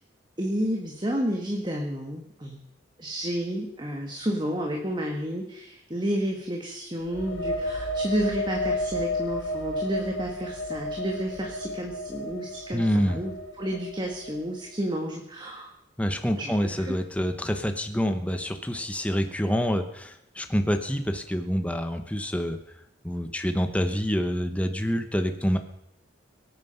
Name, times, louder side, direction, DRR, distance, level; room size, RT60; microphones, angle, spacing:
voice 1, 0.4-2.6 3.0-15.7 16.4-16.9, right 1 dB, 25° right, 1 dB, 1.6 m, -31 dB
sound 1, 7.0-14.6, left 1 dB, 75° left, 2.6 m, -32 dB
voice 2, 12.7-13.2 16.0-22.6 23.0-25.6, equal, 5° left, 6 dB, 1.0 m, -27 dB
23.0 x 9.4 x 5.8 m, 0.77 s
head